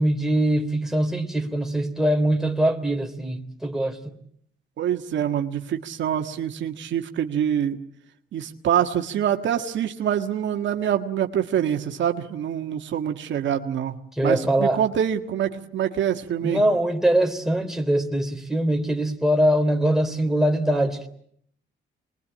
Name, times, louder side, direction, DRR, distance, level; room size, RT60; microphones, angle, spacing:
voice 1, 0.0-4.0 14.1-14.8 16.4-21.1, right 1 dB, ahead, 3.3 m, -22 dB
voice 2, 4.8-7.8 8.3-13.9 14.2-16.6, right 9 dB, 70° right, 1.7 m, -25 dB
25.5 x 21.5 x 8.7 m
cardioid pair, 90°, 20 cm